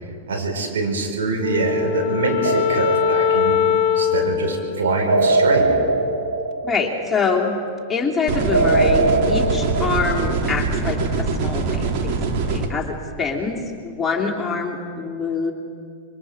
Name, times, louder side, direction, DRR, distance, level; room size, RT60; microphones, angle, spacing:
voice 1, 0.3-3.6 4.0-5.8, right 3 dB, 60° right, 1 dB, 4.9 m, -24 dB
Wind instrument woodwind instrument, 1.4-5.8, left 8 dB, 40° left, 0.9 m, -22 dB
sound 1, 2.4-3.8 5.1-7.2 8.5-10.7, right 2 dB, 85° right, 2.1 m, -21 dB
voice 2, 6.6-7.5 7.9-12.2 12.5-15.5, left 4 dB, 10° left, -3 dB, 3.0 m, -25 dB
sound 2, 8.3-12.7, right 4 dB, 45° right, 2.3 m, -23 dB
27.0 x 23.5 x 5.0 m, 2.2 s
figure-of-eight pair, 90°, 0 cm